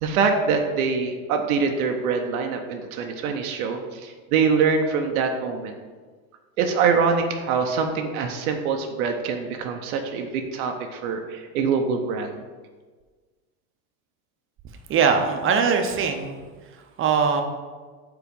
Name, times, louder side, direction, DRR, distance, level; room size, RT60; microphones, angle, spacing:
voice 1, 0.0-5.7 6.6-12.4, right 5 dB, 90° right, 3 dB, 0.8 m, -24 dB
voice 2, 14.9-16.4 17.0-17.4, right 6 dB, 30° right, 5 dB, 0.7 m, -21 dB
4.8 x 3.8 x 5.2 m, 1.4 s
supercardioid pair, 120°, 42 cm